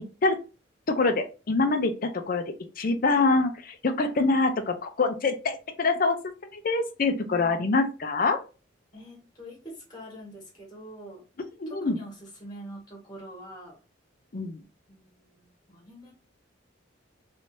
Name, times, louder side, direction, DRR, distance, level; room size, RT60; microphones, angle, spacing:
voice 1, 0.9-2.4 2.8-6.2 6.5-8.4 11.6-12.0 14.3-14.6, left 3 dB, 45° left, 8 dB, 0.5 m, -25 dB
voice 2, 7.0-7.7 8.9-11.2 11.7-13.8 14.9-16.1, equal, 20° left, -3 dB, 1.4 m, -44 dB
3.2 x 2.6 x 3.1 m, 0.32 s
head